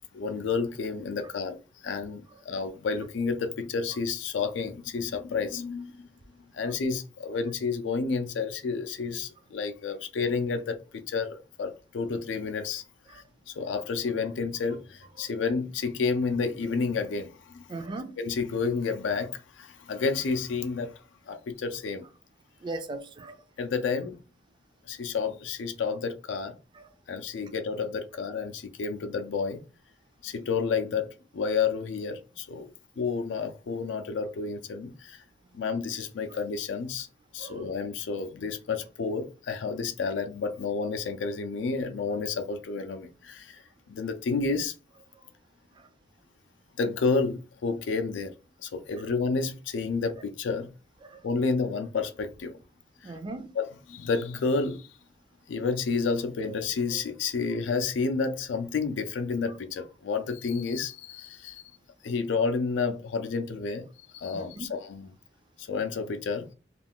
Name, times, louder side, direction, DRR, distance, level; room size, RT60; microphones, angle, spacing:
voice 1, 0.1-6.1 6.5-12.8 13.1-17.7 18.2-20.9 21.3-22.0 23.6-24.2 24.9-26.6 27.1-29.6 30.2-35.2 35.5-37.1 37.3-44.7 46.8-48.3 48.6-50.7 51.2-52.6 53.0-53.1 53.6-54.9 55.5-61.6 62.0-63.9 64.1-65.1 65.6-66.5, left 4 dB, 85° left, 0.4 m, -30 dB
voice 2, 17.7-18.2 22.6-23.4 26.7-26.8 37.4-37.7 45.8-45.9 51.0-51.2 53.0-53.5 56.9-57.0 64.3-64.7, right 2 dB, 25° right, 0.3 m, -39 dB
2.4 x 2.3 x 3.5 m
head